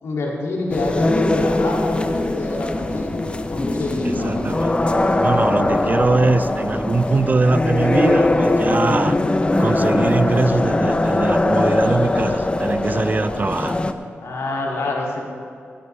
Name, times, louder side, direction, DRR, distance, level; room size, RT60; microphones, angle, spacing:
voice 1, 0.0-4.6 8.6-9.0 14.2-15.2, left 2 dB, 90° left, -2 dB, 2.6 m, -27 dB
sound 1, 0.7-13.9, left 2 dB, 25° left, 0.8 m, -20 dB
voice 2, 4.0-4.7 5.2-9.2 9.6-13.8, right 3 dB, 40° right, 12 dB, 0.5 m, -21 dB
18.0 x 11.5 x 3.4 m, 2.4 s
cardioid pair, 75°, 5 cm